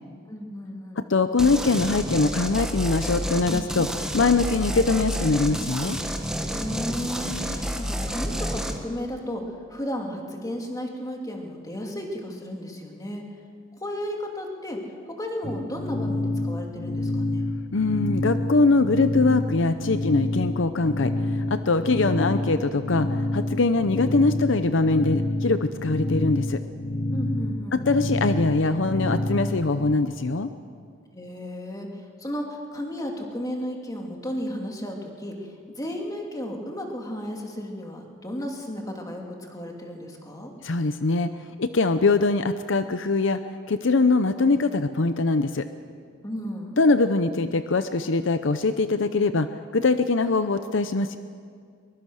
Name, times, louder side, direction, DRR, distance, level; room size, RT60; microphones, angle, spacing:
voice 1, 0.3-1.0 6.5-13.2 13.8-14.8 15.2-17.5 27.1-27.8 31.1-39.2 39.5-40.5 46.2-46.8, equal, 20° left, 1 dB, 2.7 m, -34 dB
voice 2, 1.1-3.9 4.1-6.0 17.7-26.6 27.7-30.5 40.6-41.3 41.6-43.4 43.7-45.6 46.8-49.5 49.7-51.2, left 3 dB, 70° left, 10 dB, 0.7 m, -22 dB
sound 1, 1.4-8.8, equal, 5° right, 1.5 m, -29 dB
sound 2, 15.4-30.0, left 1 dB, 40° left, 1.3 m, -28 dB
22.5 x 21.5 x 6.5 m, 2.1 s
head